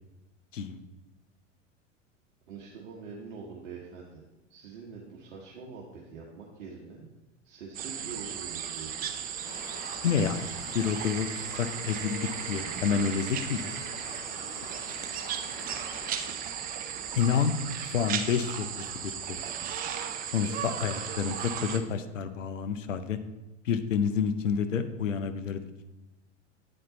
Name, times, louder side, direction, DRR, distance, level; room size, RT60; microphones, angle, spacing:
voice 1, 2.5-4.2 4.5-7.1 7.4-9.1, right 5 dB, 65° right, -3 dB, 1.2 m, -44 dB
sound 1, 7.7-21.8, right 8 dB, 25° right, 0.5 m, -36 dB
sound 2, 9.4-16.3, left 6 dB, 55° left, 0.8 m, -46 dB
voice 2, 10.0-10.5 10.7-11.3 11.5-13.6 17.2-19.7 20.3-23.2 23.6-25.6, left 7 dB, 85° left, 10 dB, 0.6 m, -29 dB
8.6 x 4.4 x 3.9 m, 1.0 s
hypercardioid pair, 95°, 37 cm